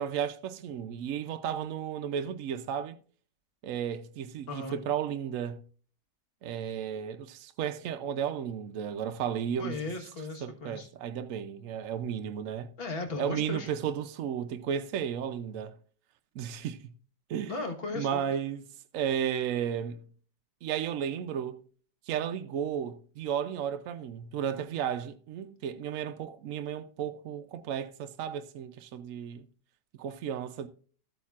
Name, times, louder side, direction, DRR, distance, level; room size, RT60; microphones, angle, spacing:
voice 1, 0.0-3.0 3.6-5.6 6.4-9.8 10.4-12.7 13.2-15.8 16.4-16.8 17.3-17.5 17.9-18.6 18.9-20.0 20.6-21.6 22.1-29.4 30.0-30.7, right 8 dB, 70° right, 0.8 m, -33 dB
voice 2, 4.5-4.8 9.6-10.9 12.8-13.7 17.4-18.3, left 3 dB, 35° left, 1.4 m, -36 dB
13.0 x 8.5 x 2.4 m
omnidirectional pair, 1.9 m